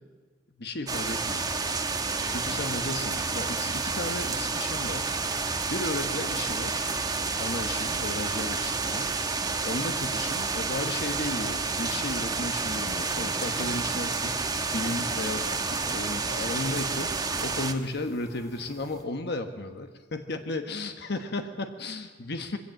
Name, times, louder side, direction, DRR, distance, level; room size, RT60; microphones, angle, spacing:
voice 1, 0.6-1.5 2.2-5.1 5.7-6.9 7.4-9.1 9.6-14.4 14.7-22.6, left 2 dB, 60° left, 6 dB, 1.2 m, -34 dB
sound 1, 0.9-17.7, right 4 dB, 20° right, 1.1 m, -30 dB
sound 2, 12.5-19.0, equal, 20° left, 2.0 m, -48 dB
22.5 x 17.0 x 7.7 m, 1.5 s
head